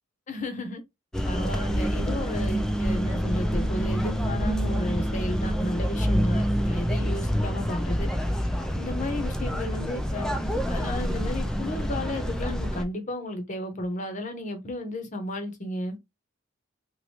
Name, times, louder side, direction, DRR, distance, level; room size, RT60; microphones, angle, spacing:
voice 1, 0.3-0.8 1.2-8.1 8.7-10.3 10.7-16.0, left 1 dB, 40° left, 0.8 m, -33 dB
sound 1, 1.1-12.8, equal, 5° left, 0.4 m, -27 dB
3.1 x 2.5 x 2.8 m
head